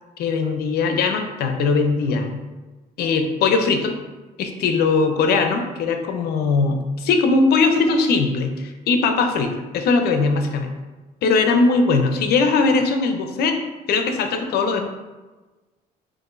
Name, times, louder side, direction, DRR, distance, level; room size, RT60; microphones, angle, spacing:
voice 1, 0.2-2.4 3.0-3.9 4.4-10.8 11.2-13.6 13.9-14.9, left 4 dB, 70° left, 5 dB, 0.6 m, -20 dB
5.9 x 2.5 x 2.5 m, 1.2 s
cardioid pair, 110°, 17 cm